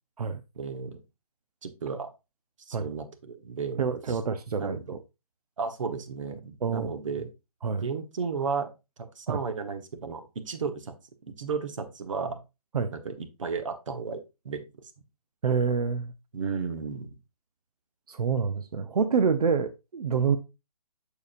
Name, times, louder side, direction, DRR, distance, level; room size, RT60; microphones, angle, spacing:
voice 1, 0.5-1.0 1.6-2.1 2.7-3.8 4.1-4.2 4.6-5.0 5.6-7.3 7.8-8.7 9.0-11.0 11.2-12.4 12.9-14.7 16.3-17.2, right 5 dB, 55° right, 1.1 m, -34 dB
voice 2, 3.8-5.0 6.6-7.1 7.6-7.9 9.3-9.4 12.7-12.9 15.4-16.1 18.1-20.4, right 6 dB, 80° right, 0.7 m, -27 dB
7.0 x 6.6 x 2.5 m
hypercardioid pair, 170°, 19 cm